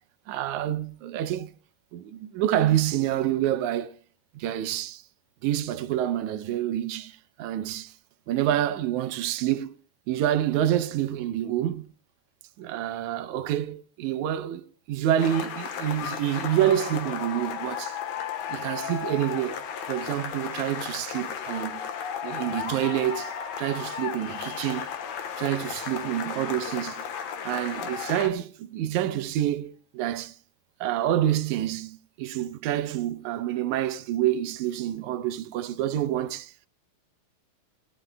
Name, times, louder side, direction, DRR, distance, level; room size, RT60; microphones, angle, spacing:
voice 1, 0.3-1.5 1.9-3.9 4.4-5.0 5.4-7.9 8.3-9.8 10.1-11.9 12.6-18.0 18.5-19.6 19.9-21.8 22.2-24.9 25.4-27.0 27.5-30.4 30.8-36.5, right 12 dB, 85° right, 2.1 m, -27 dB
sound 1, 15.2-28.3, left 8 dB, 65° left, 2.3 m, -34 dB
19.5 x 13.5 x 2.2 m
omnidirectional pair, 3.4 m